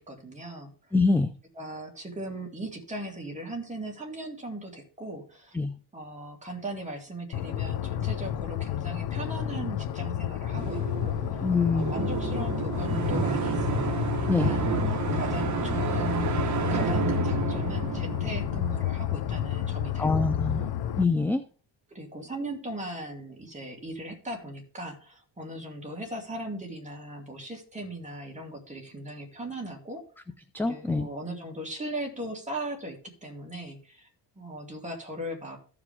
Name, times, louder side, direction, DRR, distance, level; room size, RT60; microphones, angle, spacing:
voice 1, 0.0-0.9 1.6-5.6 5.9-11.4 11.7-16.4 16.7-20.2 20.5-20.7 21.9-30.0 30.6-34.1 34.4-35.6, right 1 dB, 15° right, 0 dB, 2.5 m, -38 dB
voice 2, 0.9-1.3 5.5-5.7 11.4-11.9 14.3-14.6 20.0-20.6 21.0-21.4 30.5-31.1, left 3 dB, 5° left, 10 dB, 0.3 m, -24 dB
sound 1, 7.3-21.0, left 11 dB, 65° left, 0.7 m, -31 dB
sound 2, 10.5-19.4, right 5 dB, 40° right, 1.3 m, -30 dB
14.5 x 5.0 x 3.5 m, 0.40 s
cardioid pair, 130°, 43 cm